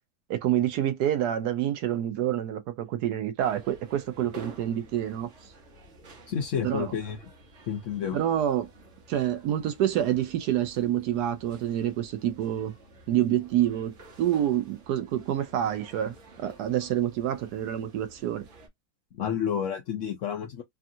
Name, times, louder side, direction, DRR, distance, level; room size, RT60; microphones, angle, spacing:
voice 1, 0.3-5.3 6.6-6.9 8.1-8.7 9.1-12.7 13.1-18.5, right 11 dB, 70° right, 1.0 m, -27 dB
sound 1, 3.4-18.7, right 2 dB, 45° right, 1.0 m, -51 dB
voice 2, 6.3-7.3 7.7-8.2 19.1-20.6, left 8 dB, 75° left, 0.7 m, -30 dB
3.4 x 2.4 x 2.6 m
omnidirectional pair, 2.1 m